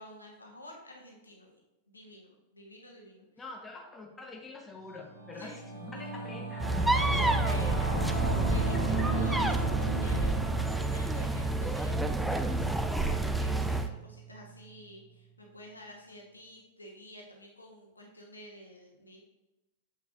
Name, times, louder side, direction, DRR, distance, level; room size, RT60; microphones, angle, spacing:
voice 1, 0.0-1.5 1.9-3.3 5.3-6.2 6.7-19.2, left 1 dB, 80° left, 0 dB, 1.2 m, -49 dB
voice 2, 3.4-8.0 8.7-9.1, left 3 dB, 15° left, 2 dB, 0.9 m, -45 dB
Singing / Musical instrument, 4.9-14.6, right 4 dB, 80° right, 1.9 m, -36 dB
sound 1, 6.6-13.9, right 2 dB, 5° right, 0.4 m, -29 dB
7.2 x 6.0 x 2.5 m, 0.99 s
figure-of-eight pair, 90°, 0 cm